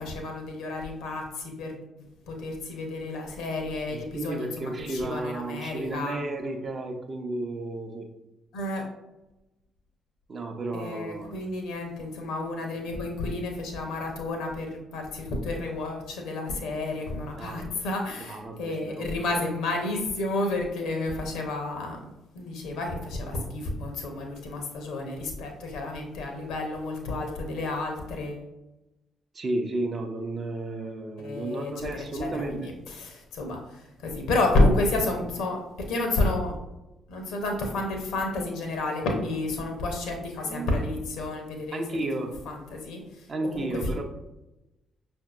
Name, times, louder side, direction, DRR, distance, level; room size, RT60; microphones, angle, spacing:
voice 1, 0.0-6.2 8.5-8.8 10.7-22.0 22.3-28.4 31.2-31.9 32.2-36.6 37.1-41.8 42.5-43.3 43.5-44.0, left 2 dB, 65° left, 3 dB, 0.7 m, -30 dB
voice 2, 3.9-8.1 10.3-11.4 17.3-17.8 18.3-19.4 29.3-32.7 40.4-40.8 41.7-42.4 43.3-44.0, right 2 dB, 40° right, 3 dB, 0.6 m, -33 dB
5.6 x 2.6 x 2.4 m, 0.95 s
figure-of-eight pair, 40°, 0 cm